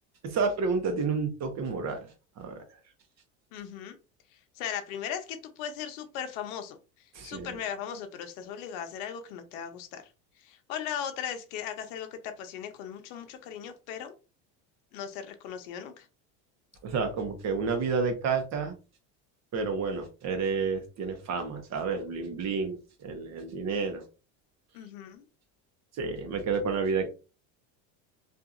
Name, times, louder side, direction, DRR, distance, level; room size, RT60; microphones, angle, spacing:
voice 1, 0.2-2.1 2.4-2.6 7.1-7.6 16.8-18.7 19.5-24.0 26.0-27.1, right 4 dB, 40° right, 6 dB, 0.9 m, -30 dB
voice 2, 3.5-4.0 4.6-6.8 7.2-10.0 10.4-14.1 14.9-16.1 24.7-25.2, left 8 dB, 80° left, 7 dB, 0.7 m, -38 dB
2.7 x 2.5 x 2.4 m, 0.32 s
supercardioid pair, 115°, 42 cm